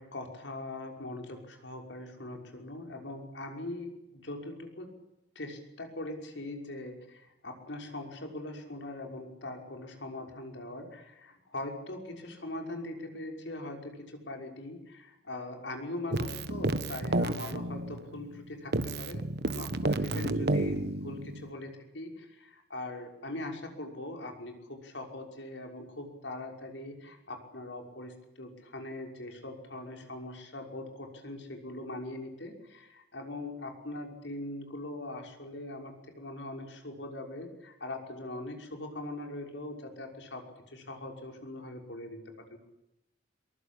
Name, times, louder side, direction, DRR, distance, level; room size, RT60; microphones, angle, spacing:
voice 1, 0.0-4.9 5.4-19.3 19.5-42.6, left 2 dB, 85° left, 3 dB, 5.8 m, -41 dB
Keyboard (musical), 16.1-18.4 18.7-21.5, right 2 dB, 65° right, 1.3 m, -31 dB
23.0 x 23.0 x 8.8 m, 0.85 s
head